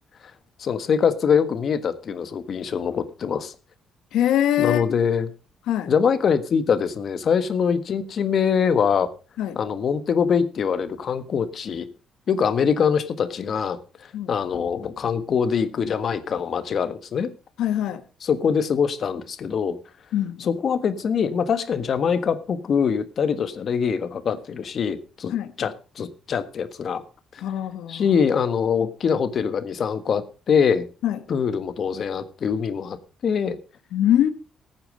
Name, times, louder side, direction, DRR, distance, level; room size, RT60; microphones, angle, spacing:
voice 1, 0.6-3.5 4.6-5.3 5.9-9.1 9.5-11.9 12.3-13.8 14.3-17.3 18.2-19.8 20.4-25.3 25.6-27.0 27.3-27.4 27.9-30.8 31.3-33.0 33.2-33.6, left 6 dB, 55° left, 1.5 m, -23 dB
voice 2, 4.1-4.8 5.7-5.9 9.4-9.6 14.1-14.3 17.6-18.0 20.1-20.5 25.3-25.5 27.4-28.0 31.0-31.2 33.9-34.3, left 11 dB, 85° left, 1.1 m, -23 dB
14.5 x 9.0 x 5.0 m
cardioid pair, 90°, 0 cm